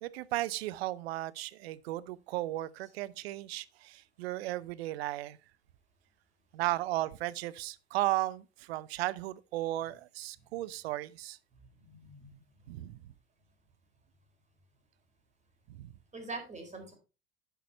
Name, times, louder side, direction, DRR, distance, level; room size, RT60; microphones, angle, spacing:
voice 1, 0.0-5.4 6.5-11.4 12.7-13.0 15.8-15.9, right 16 dB, 65° right, 0.8 m, -35 dB
voice 2, 11.8-12.4 16.1-16.9, right 3 dB, 20° right, 4.3 m, -43 dB
10.0 x 7.0 x 4.3 m
hypercardioid pair, 80°, 33 cm